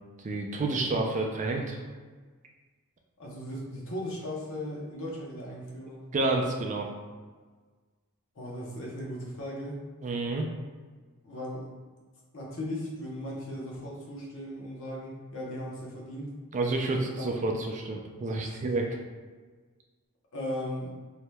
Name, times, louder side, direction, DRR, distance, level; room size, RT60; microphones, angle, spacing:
voice 1, 0.2-1.8 6.1-6.9 10.0-10.4 16.5-19.0, right 2 dB, 35° right, 1 dB, 0.3 m, -29 dB
voice 2, 3.2-6.1 8.4-9.8 11.2-11.7 12.3-16.3 17.2-17.3 18.4-18.6 20.3-20.9, left 1 dB, 60° left, -3 dB, 0.8 m, -37 dB
3.2 x 2.7 x 2.2 m, 1.4 s
head